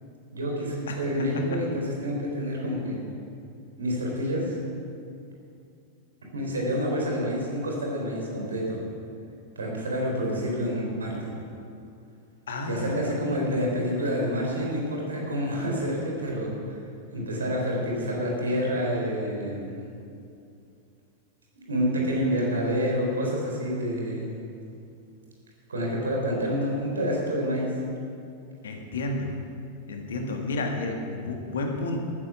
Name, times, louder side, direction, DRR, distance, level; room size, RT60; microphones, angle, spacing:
voice 1, 0.3-3.0 3.8-4.6 6.2-8.8 9.6-11.2 12.7-16.8 17.1-19.8 21.6-24.4 25.7-27.8, equal, 70° right, -1 dB, 3.6 m, -28 dB
voice 2, 0.9-1.6 12.5-13.2 28.6-29.3 29.9-32.0, left 2 dB, 65° left, 3 dB, 1.8 m, -31 dB
12.5 x 10.0 x 7.0 m, 2.5 s
figure-of-eight pair, 90°, 0 cm